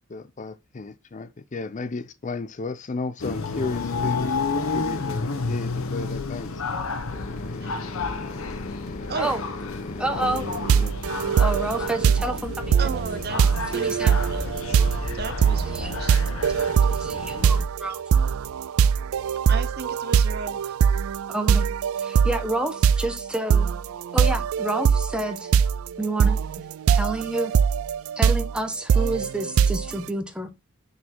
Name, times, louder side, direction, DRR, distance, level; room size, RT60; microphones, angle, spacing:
voice 1, 0.1-4.4 4.7-6.5 7.1-10.9, left 3 dB, 35° left, 0.5 m, -35 dB
sound 1, 3.2-17.6, left 3 dB, 80° left, 0.9 m, -31 dB
voice 2, 10.0-10.5 11.4-12.7 13.7-14.2 15.6-16.0 16.9-18.0 21.3-21.7 22.0-23.7 24.1-25.5 26.0-26.4 26.9-27.5 28.2-30.5, right 1 dB, 5° right, 0.9 m, -29 dB
sound 2, 10.2-30.1, right 7 dB, 85° right, 0.3 m, -22 dB
voice 3, 12.8-13.4 13.7-14.8 15.1-16.5 19.4-20.8, right 4 dB, 50° right, 0.8 m, -35 dB
6.1 x 4.1 x 4.5 m
head